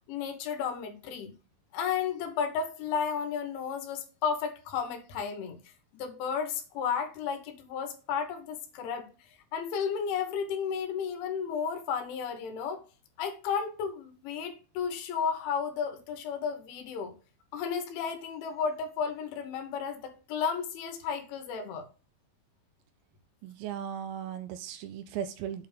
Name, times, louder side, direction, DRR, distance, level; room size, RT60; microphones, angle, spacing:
voice 1, 0.1-1.3 1.7-5.6 5.9-9.1 9.5-12.8 13.2-17.1 17.5-21.9, left 6 dB, 85° left, 3.6 m, -33 dB
voice 2, 23.4-25.7, right 9 dB, 85° right, 2.6 m, -37 dB
8.5 x 3.4 x 6.5 m
omnidirectional pair, 5.4 m